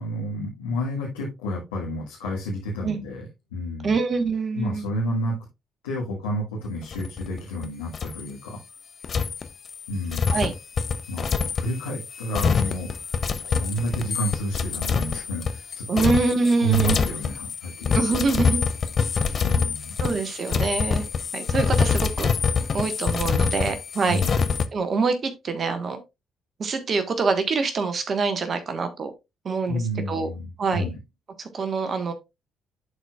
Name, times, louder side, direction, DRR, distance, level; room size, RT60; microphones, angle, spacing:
voice 1, 0.0-3.2 3.5-4.0 4.5-5.3 5.8-8.6 9.9-10.4 11.1-16.1 16.6-18.0 19.4-19.9 24.0-24.4 29.7-31.0, equal, 85° left, 1.6 m, -30 dB
voice 2, 3.8-4.9 10.3-10.5 15.9-17.1 17.9-18.6 20.0-21.0 21.3-22.3 22.7-24.3 24.7-26.0 26.6-29.1 29.4-30.3 30.6-30.9 31.4-32.1, right 4 dB, 50° right, 1.3 m, -25 dB
sound 1, 6.9-7.7 7.9-8.3 9.0-24.7, left 5 dB, 45° left, 0.6 m, -26 dB
11.5 x 4.3 x 2.3 m
hypercardioid pair, 45°, 0 cm